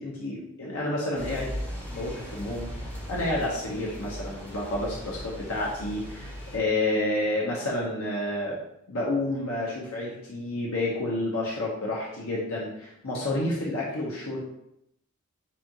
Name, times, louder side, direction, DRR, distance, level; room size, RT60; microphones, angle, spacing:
voice 1, 0.0-1.5 1.9-2.7 3.1-8.6 8.9-14.4, left 1 dB, 70° left, -4 dB, 0.9 m, -30 dB
sound 1, 1.1-6.6, equal, 10° left, 1.3 m, -38 dB
7.2 x 2.5 x 2.9 m, 0.79 s
head